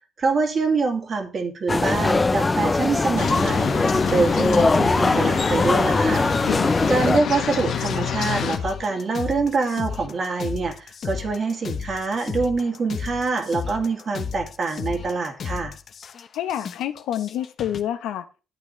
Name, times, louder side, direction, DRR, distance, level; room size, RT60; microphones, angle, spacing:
voice 1, 0.2-3.8 4.1-6.3 6.9-15.7, right 4 dB, 45° right, 2.2 m, -25 dB
sound 1, 1.7-7.2, left 3 dB, 20° left, 0.5 m, -21 dB
sound 2, 3.2-8.6, left 7 dB, 70° left, 1.6 m, -27 dB
voice 2, 6.4-7.0 16.3-18.3, left 11 dB, 90° left, 0.9 m, -28 dB
sound 3, 7.4-17.8, left 6 dB, 55° left, 0.8 m, -34 dB
11.0 x 8.5 x 3.1 m
cardioid pair, 90°, 0 cm